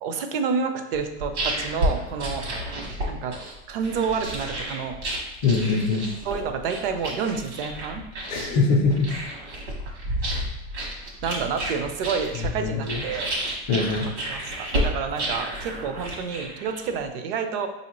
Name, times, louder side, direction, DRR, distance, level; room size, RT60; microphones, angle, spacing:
voice 1, 0.0-2.4 3.1-3.4 3.7-5.0 6.3-8.1 11.2-13.3 14.3-17.7, right 6 dB, 55° right, 6 dB, 0.5 m, -29 dB
sound 1, 0.9-17.0, right 1 dB, 75° right, 1.3 m, -31 dB
voice 2, 5.4-6.0 8.3-9.1 12.6-13.0 13.7-14.1, left 4 dB, 35° left, 1 dB, 0.5 m, -22 dB
4.6 x 2.7 x 3.0 m, 0.89 s
supercardioid pair, 165°, 34 cm